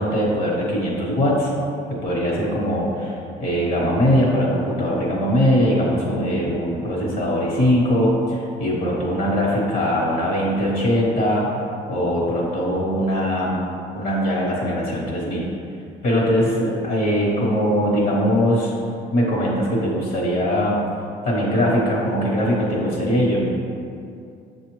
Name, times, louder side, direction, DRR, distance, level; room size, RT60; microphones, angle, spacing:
voice 1, 0.0-1.5 1.9-11.4 11.9-13.6 13.9-15.5 16.0-18.7 19.1-20.8 21.2-23.4, equal, 65° left, -4 dB, 1.2 m, -21 dB
6.5 x 2.4 x 3.1 m, 2.4 s
cardioid pair, 110°, 17 cm